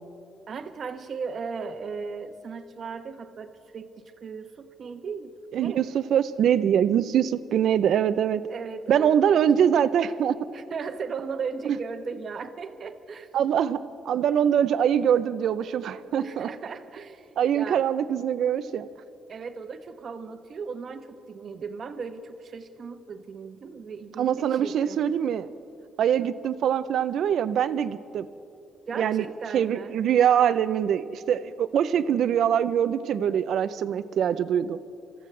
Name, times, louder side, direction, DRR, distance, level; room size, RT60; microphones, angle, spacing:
voice 1, 0.5-5.9 8.5-9.4 10.5-13.3 16.2-17.9 19.3-25.0 26.2-26.3 28.9-30.0, right 5 dB, 55° right, 8 dB, 1.0 m, -37 dB
voice 2, 5.5-8.4 8.9-10.4 13.3-13.8 14.1-16.5 17.4-18.9 24.2-25.5 26.0-28.3 29.0-29.2 29.5-34.8, right 9 dB, 70° right, 13 dB, 0.6 m, -23 dB
26.5 x 14.5 x 3.3 m, 2.6 s
cardioid pair, 90°, 0 cm